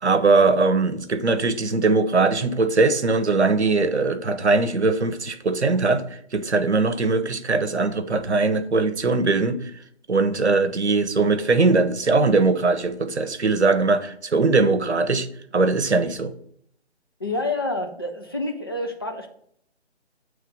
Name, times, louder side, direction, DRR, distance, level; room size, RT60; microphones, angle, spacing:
voice 1, 0.0-9.7 10.1-15.3 15.5-16.3, right 3 dB, 75° right, 0.9 m, -21 dB
voice 2, 17.2-19.3, left 2 dB, 20° left, 0.5 m, -28 dB
8.5 x 3.3 x 5.1 m
figure-of-eight pair, 145°, 34 cm